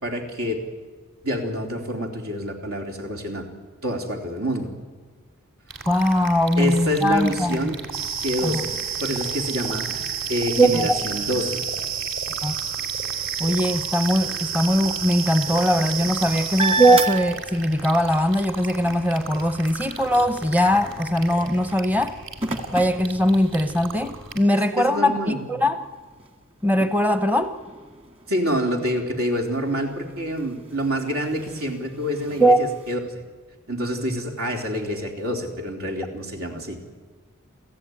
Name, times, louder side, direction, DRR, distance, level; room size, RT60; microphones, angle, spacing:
voice 1, 0.0-0.6 1.2-3.5 3.8-4.7 6.6-7.8 8.0-8.8 9.0-11.6 24.5-25.5 28.3-33.0 33.7-37.0, equal, 80° right, 2 dB, 3.8 m, -27 dB
sound 1, 5.7-24.4, right 3 dB, 65° right, 3.4 m, -38 dB
voice 2, 5.9-7.7 8.4-8.6 10.6-11.0 12.4-12.5 13.4-22.2 22.7-25.8 26.6-27.5 32.4-32.6, equal, 10° right, 10 dB, 0.7 m, -20 dB
sound 2, 7.9-17.1, right 7 dB, 45° right, 1.8 m, -30 dB
sound 3, 16.4-18.0 18.4-23.9 24.5-24.6 25.0-32.9, right 3 dB, 25° right, 1.7 m, -34 dB
28.0 x 15.5 x 9.6 m, 1.4 s
head